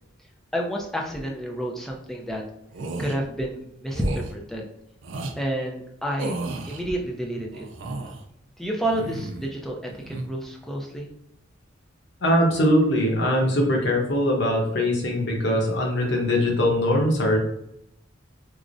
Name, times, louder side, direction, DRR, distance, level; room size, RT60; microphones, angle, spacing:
voice 1, 0.5-2.4 3.0-4.7 5.4-6.3 6.7-7.6 8.6-11.1, right 1 dB, ahead, 0 dB, 0.4 m, -29 dB
sound 1, 2.7-3.2 3.9-4.3 5.0-5.4 6.2-6.8 7.5-8.2 8.8-9.5 9.9-10.3, right 2 dB, 75° right, 0.4 m, -33 dB
voice 2, 12.2-17.4, left 1 dB, 60° left, 0 dB, 0.8 m, -21 dB
4.7 x 2.1 x 2.5 m, 0.78 s
head